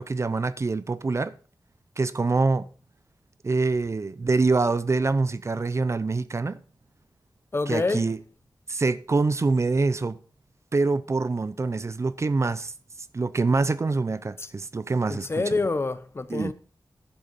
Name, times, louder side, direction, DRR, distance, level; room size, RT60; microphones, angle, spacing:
voice 1, 0.0-1.3 2.0-2.7 3.4-6.6 7.7-8.2 8.7-10.2 10.7-12.7 13.1-15.4 16.3-16.5, right 3 dB, 40° right, 0.6 m, -25 dB
voice 2, 7.5-8.1 14.4-14.5 15.1-16.5, left 3 dB, 35° left, 0.7 m, -27 dB
11.5 x 7.9 x 5.3 m
wide cardioid pair, 120°, 8 cm